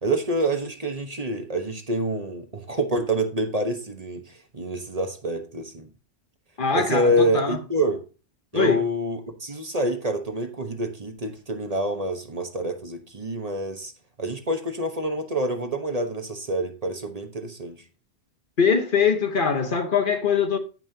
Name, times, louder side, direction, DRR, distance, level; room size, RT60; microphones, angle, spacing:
voice 1, 0.0-4.2 4.5-5.9 6.7-8.0 8.5-13.9 14.2-17.8, right 1 dB, 35° right, 1.2 m, -27 dB
voice 2, 6.6-7.6 8.5-8.8 18.6-20.6, left 6 dB, 55° left, 1.1 m, -22 dB
15.5 x 5.5 x 2.8 m
omnidirectional pair, 1.1 m